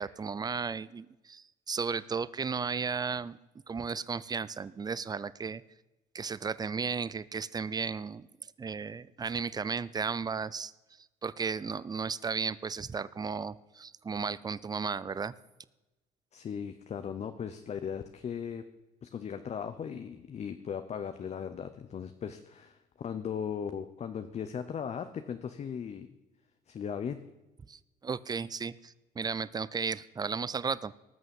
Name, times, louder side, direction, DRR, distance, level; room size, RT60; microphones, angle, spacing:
voice 1, 0.0-3.4 3.7-5.6 6.1-8.3 8.6-10.7 11.2-15.3 27.7-30.9, right 5 dB, 25° right, 18 dB, 0.6 m, -34 dB
voice 2, 16.3-18.6 19.0-26.1 26.7-27.2, left 7 dB, 40° left, 9 dB, 0.9 m, -38 dB
19.0 x 6.5 x 7.2 m, 1.0 s
cardioid pair, 110°, 17 cm